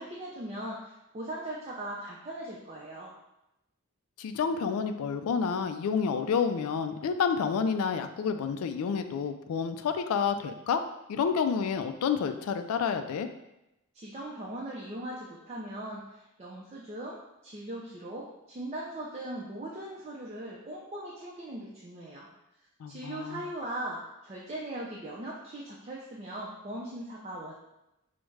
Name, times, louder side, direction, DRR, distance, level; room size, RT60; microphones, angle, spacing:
voice 1, 0.0-3.1 13.9-17.2 17.4-22.3 22.9-27.5, right 1 dB, 30° right, -4 dB, 0.4 m, -39 dB
voice 2, 4.2-10.8 11.1-13.3 22.8-23.4, left 6 dB, 75° left, 9 dB, 0.3 m, -29 dB
4.8 x 2.1 x 3.1 m, 0.91 s
head